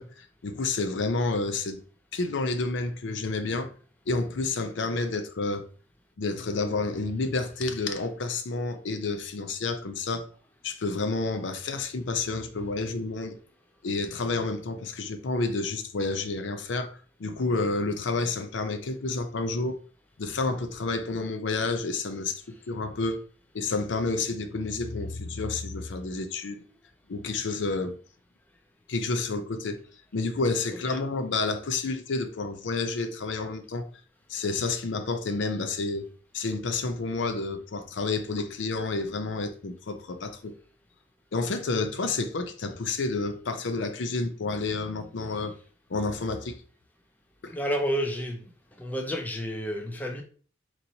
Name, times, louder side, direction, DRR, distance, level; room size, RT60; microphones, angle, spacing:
voice 1, 0.0-1.8 2.1-3.7 4.1-5.7 6.2-10.3 10.6-13.4 13.8-19.8 20.2-23.2 23.5-26.6 27.1-28.0 28.9-29.8 30.1-33.9 34.3-36.1 36.3-40.5 41.3-45.5 45.9-46.6 47.4-47.5, left 3 dB, 85° left, 0.5 m, -30 dB
voice 2, 47.5-48.4 48.8-50.2, equal, 10° left, 0.5 m, -30 dB
4.0 x 3.0 x 2.7 m
head